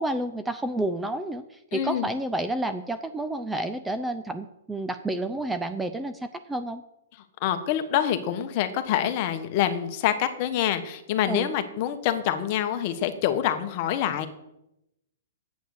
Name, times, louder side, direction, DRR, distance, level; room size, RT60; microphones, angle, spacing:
voice 1, 0.0-1.4 1.7-6.8 11.3-11.5, right 1 dB, 5° right, 10 dB, 0.5 m, -30 dB
voice 2, 1.7-2.1 7.4-14.3, left 10 dB, 40° left, 9 dB, 1.2 m, -26 dB
9.3 x 8.3 x 6.5 m, 0.86 s
hypercardioid pair, 145°, 0 cm